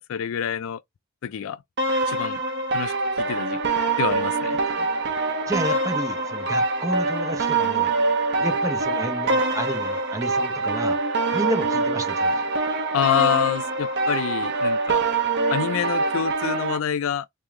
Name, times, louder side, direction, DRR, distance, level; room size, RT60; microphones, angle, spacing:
voice 1, 0.1-0.8 1.2-1.6 2.1-2.4 2.7-4.6 12.9-15.0 15.5-17.3, left 9 dB, 70° left, 0.4 m, -27 dB
sound 1, 1.8-16.8, right 3 dB, 55° right, 1.0 m, -24 dB
voice 2, 5.5-7.9 8.4-11.0 11.3-12.5, right 1 dB, 15° right, 0.8 m, -31 dB
3.2 x 2.7 x 3.5 m
head